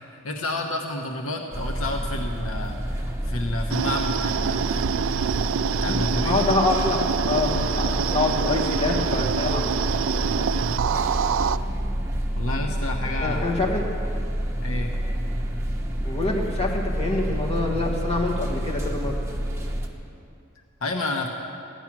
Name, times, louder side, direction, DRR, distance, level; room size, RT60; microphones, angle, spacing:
voice 1, 0.2-4.9 5.8-6.4 10.4-10.7 12.3-13.6 14.6-14.9 20.8-21.3, left 2 dB, 70° left, 2 dB, 1.0 m, -30 dB
sound 1, 1.5-19.9, equal, 10° right, 1.1 m, -28 dB
sound 2, 3.7-11.6, right 7 dB, 60° right, 0.3 m, -26 dB
voice 2, 5.9-9.7 10.1-10.2 10.9-11.0 13.2-13.9 16.0-19.2, left 2 dB, 30° left, -2 dB, 1.7 m, -26 dB
15.0 x 10.5 x 6.0 m, 2.6 s
head